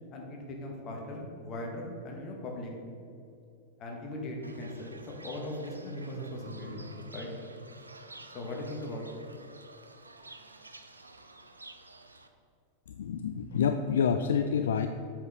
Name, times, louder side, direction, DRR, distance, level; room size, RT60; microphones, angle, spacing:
voice 1, 0.1-2.7 3.8-5.0 5.2-7.3 8.3-9.1, left 1 dB, 30° left, 0 dB, 1.7 m, -39 dB
Fowl / Bird, 4.4-12.3, right 1 dB, 80° right, 0.5 m, -48 dB
voice 2, 12.9-14.9, left 7 dB, 65° left, 7 dB, 0.3 m, -28 dB
7.7 x 5.1 x 5.2 m, 2.6 s
figure-of-eight pair, 90°, 0 cm